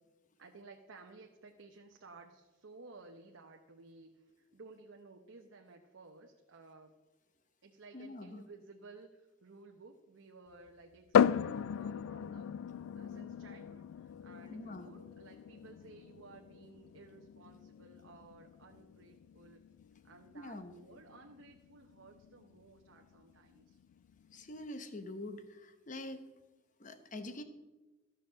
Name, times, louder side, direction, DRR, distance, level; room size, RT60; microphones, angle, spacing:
voice 1, 0.4-6.9 7.6-12.5 12.9-19.6 20.0-23.8, right 3 dB, 85° right, 2 dB, 0.9 m, -56 dB
voice 2, 7.9-8.4 14.5-14.9 20.3-20.8 24.3-26.2 26.8-27.4, left 1 dB, 40° left, 9 dB, 0.9 m, -45 dB
sound 1, 11.1-24.6, left 8 dB, 85° left, 0.3 m, -37 dB
13.0 x 6.7 x 6.3 m, 1.1 s
head